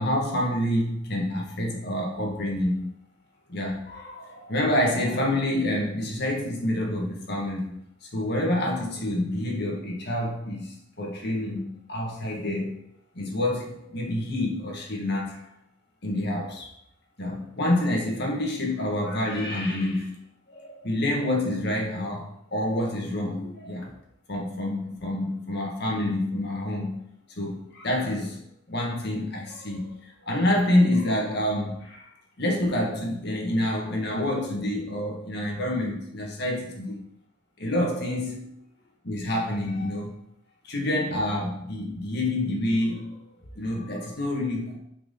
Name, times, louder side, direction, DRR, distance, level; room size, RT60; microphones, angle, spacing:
voice 1, 0.0-2.9 3.5-12.7 13.2-15.5 16.0-16.7 17.2-20.2 20.5-23.9 24.3-27.0 27.4-28.4 28.7-32.1 32.4-37.0 37.6-38.5 39.0-40.2 40.6-43.2 43.6-44.8, left 1 dB, 55° left, -1 dB, 1.8 m, -27 dB
9.2 x 4.7 x 3.9 m, 0.74 s
head